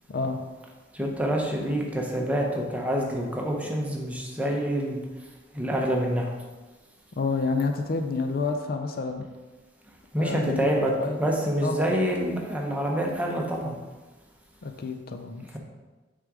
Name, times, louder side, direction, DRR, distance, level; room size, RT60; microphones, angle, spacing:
voice 1, 0.1-0.4 7.2-9.2 10.2-10.7 11.0-11.2 11.6-11.8 14.6-15.6, left 4 dB, 50° left, 5 dB, 0.4 m, -29 dB
voice 2, 0.9-5.0 5.5-6.3 10.1-10.9 11.2-13.7, right 1 dB, 5° right, 0 dB, 0.8 m, -27 dB
6.5 x 3.7 x 4.7 m, 1.2 s
head